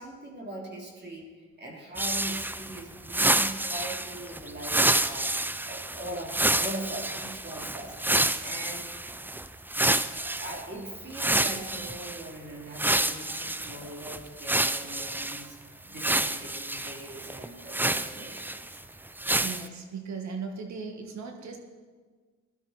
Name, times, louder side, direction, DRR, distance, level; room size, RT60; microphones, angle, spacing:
voice 1, 0.0-5.3 5.7-8.0 8.4-8.9 9.7-15.6 15.9-18.5, right 1 dB, 35° right, -1 dB, 3.4 m, -41 dB
sound 1, 2.0-10.6 11.1-12.3 12.7-15.5 15.9-18.8 19.2-19.7, right 2 dB, 5° right, 0.4 m, -28 dB
voice 2, 19.4-21.6, right 5 dB, 65° right, 4 dB, 2.0 m, -37 dB
15.5 x 11.5 x 4.4 m, 1.5 s
cardioid pair, 90°, 30 cm